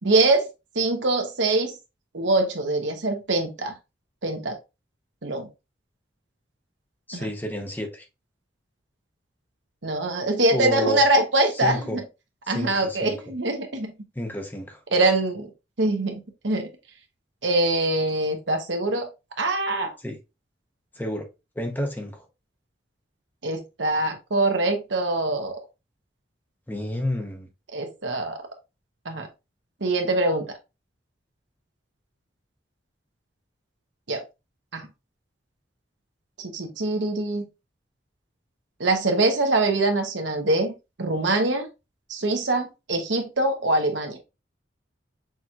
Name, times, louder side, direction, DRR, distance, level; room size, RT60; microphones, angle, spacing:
voice 1, 0.0-0.5 0.7-1.7 2.1-3.7 4.2-4.6 5.2-5.5 7.1-7.3 9.8-12.0 12.5-13.9 14.9-15.5 15.8-16.7 17.4-19.1 19.4-19.9 23.4-25.6 27.7-28.4 29.0-29.3 29.8-30.4 34.1-34.2 34.7-34.9 36.4-37.4 38.8-40.7 41.0-41.7 42.1-44.2, right 2 dB, 85° right, 1.1 m, -23 dB
voice 2, 7.1-8.1 10.5-11.0 11.6-12.0 12.5-13.2 14.2-14.8 20.0-20.2 20.9-21.2 21.6-22.3 26.7-27.5, left 1 dB, 10° left, 0.8 m, -30 dB
6.0 x 3.0 x 2.4 m
head